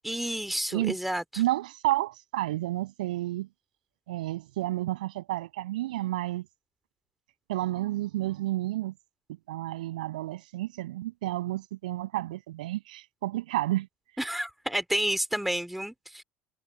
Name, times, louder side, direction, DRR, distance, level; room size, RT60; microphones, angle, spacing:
voice 1, 0.0-1.4 14.2-16.2, right 1 dB, 5° right, 3.0 m, -30 dB
voice 2, 1.4-3.5 4.1-6.5 7.5-8.9 9.5-13.9, right 16 dB, 75° right, 7.9 m, -31 dB
figure-of-eight pair, 60°, 4 cm